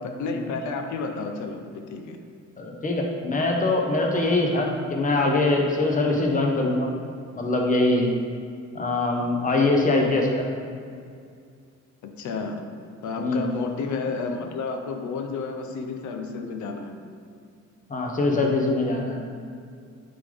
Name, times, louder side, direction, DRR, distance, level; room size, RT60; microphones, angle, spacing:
voice 1, 0.0-2.2 12.0-12.7 13.0-16.9, left 4 dB, 75° left, 5 dB, 0.7 m, -31 dB
voice 2, 2.6-6.9 7.4-8.1 8.7-10.5 13.2-13.5 17.9-19.2, left 2 dB, 25° left, 0 dB, 1.1 m, -23 dB
8.6 x 3.9 x 3.5 m, 2.2 s
cardioid pair, 90°, 30 cm